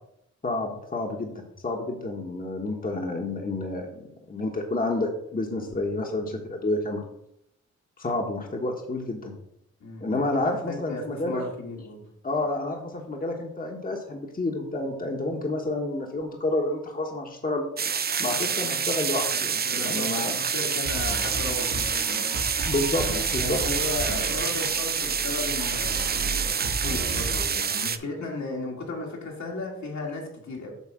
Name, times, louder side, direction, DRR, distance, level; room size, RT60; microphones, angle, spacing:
voice 1, 0.4-7.0 8.0-9.3 10.0-11.4 12.2-17.6 18.2-20.4 22.6-23.0 23.3-23.6, left 2 dB, 30° left, 1 dB, 1.3 m, -29 dB
voice 2, 9.8-12.1 19.6-22.0 23.3-30.7, left 2 dB, 70° left, -1 dB, 2.3 m, -35 dB
sound 1, 17.8-28.0, right 6 dB, 35° right, 0.5 m, -27 dB
sound 2, 20.8-27.4, right 2 dB, 80° right, 2.3 m, -34 dB
8.2 x 3.2 x 6.2 m, 0.76 s
cardioid pair, 60°, 30 cm